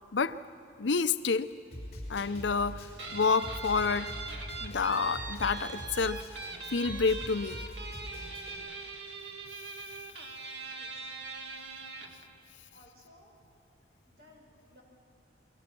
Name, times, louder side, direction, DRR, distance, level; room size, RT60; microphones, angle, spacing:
voice 1, 0.8-1.5 2.1-4.1 4.6-6.2 6.7-7.6, left 4 dB, 85° left, 13 dB, 0.7 m, -29 dB
Snare drum, 1.7-8.6, equal, 35° left, 5.4 m, -44 dB
sound 1, 2.2-9.2 9.6-9.9 10.2-10.3, equal, 65° left, 1.5 m, -54 dB
Guitar, 3.0-12.2, right 4 dB, 80° right, 2.1 m, -41 dB
voice 2, 10.6-11.1 12.5-13.3 14.0-14.8, left 1 dB, 65° right, -1 dB, 5.6 m, -59 dB
29.5 x 23.0 x 6.1 m, 2.5 s
head